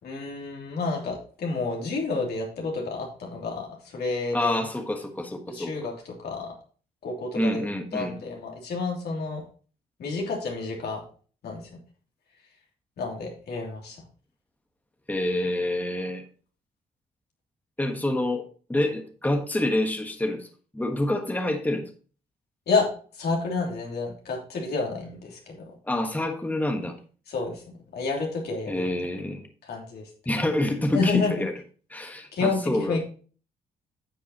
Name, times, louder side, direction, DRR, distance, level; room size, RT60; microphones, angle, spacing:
voice 1, 0.0-4.6 5.5-6.5 7.0-7.6 7.9-9.4 10.0-11.0 11.4-11.6 13.0-14.0 22.7-22.9 23.1-25.6 27.3-27.6 27.9-28.8 29.6-30.1 30.9-31.5 32.3-33.0, left 4 dB, 70° left, 0 dB, 3.0 m, -29 dB
voice 2, 4.3-5.7 7.3-8.1 15.1-16.2 17.8-20.5 20.7-21.9 25.8-27.0 28.7-29.5 30.2-31.5 31.9-33.0, left 1 dB, 10° left, 5 dB, 1.3 m, -27 dB
9.9 x 7.0 x 3.0 m, 0.40 s
supercardioid pair, 60°, 17 cm